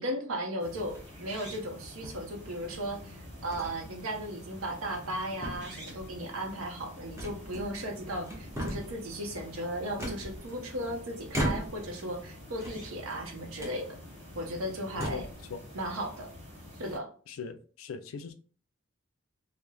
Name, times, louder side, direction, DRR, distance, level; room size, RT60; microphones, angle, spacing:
voice 1, 0.0-14.0 14.3-15.3 15.7-16.3 16.8-17.1, right 1 dB, 80° right, 0.7 m, -36 dB
sound 1, 0.6-17.0, left 1 dB, 55° right, 1.1 m, -47 dB
sound 2, 0.9-1.2 2.0-2.8 3.5-3.8 4.2-4.3 4.8-5.2 5.4-6.1 7.2-7.9 8.2-9.0 10.0-10.8 11.3-12.0 12.5-13.2 13.6-13.8 14.4-14.5 14.9-15.4, equal, 15° right, 0.6 m, -37 dB
voice 2, 17.3-18.3, left 5 dB, 75° left, 0.4 m, -40 dB
3.1 x 2.0 x 2.2 m
head